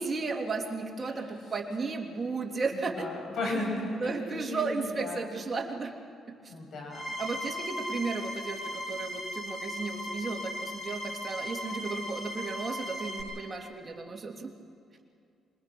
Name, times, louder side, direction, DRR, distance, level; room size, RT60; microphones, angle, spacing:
voice 1, 0.0-3.1 4.0-5.9 6.4-6.5 7.2-14.5, right 4 dB, 30° right, 1 dB, 2.8 m, -34 dB
voice 2, 2.7-5.2 6.5-7.2, left 2 dB, 60° left, 1 dB, 6.8 m, -35 dB
sound 1, 6.9-13.2, equal, 10° left, 6.6 m, -37 dB
25.5 x 21.5 x 6.1 m, 2.3 s
cardioid pair, 90°, 0 cm